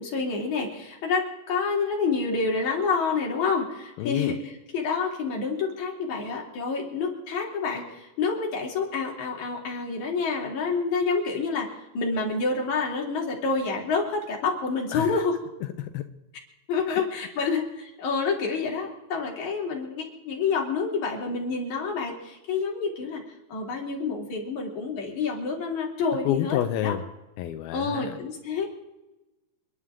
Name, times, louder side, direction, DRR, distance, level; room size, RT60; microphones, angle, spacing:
voice 1, 0.0-15.4 16.7-23.2 23.5-26.9 27.7-28.7, left 4 dB, 55° left, -1 dB, 4.4 m, -28 dB
voice 2, 4.0-4.4 14.9-15.2 15.6-16.0 16.9-17.5 26.3-27.0 27.4-28.2, left 11 dB, 90° left, 8 dB, 2.7 m, -29 dB
29.0 x 11.0 x 3.7 m, 1.0 s
omnidirectional pair, 4.2 m